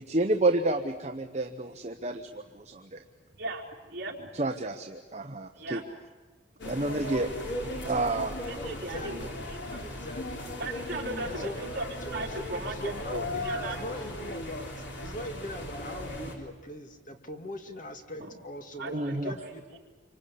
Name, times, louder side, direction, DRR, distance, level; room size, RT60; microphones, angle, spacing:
voice 1, 0.0-3.0 4.3-5.8 6.6-7.3 7.8-8.4 18.9-19.3, right 2 dB, 35° right, 5 dB, 1.0 m, -29 dB
voice 2, 3.4-4.3 5.6-5.8 6.6-6.7 8.5-9.8 10.6-11.8 12.1-13.8 18.2-18.3 18.8-18.9 19.2-19.4, right 2 dB, 50° right, 0 dB, 4.0 m, -37 dB
sound 1, 6.6-16.3, left 1 dB, 70° left, 4.3 m, -37 dB
voice 3, 8.6-9.4 9.8-10.5 11.2-11.6 12.0-12.4 12.7-19.8, equal, 40° left, 5 dB, 2.2 m, -41 dB
27.5 x 25.0 x 8.5 m, 1.3 s
head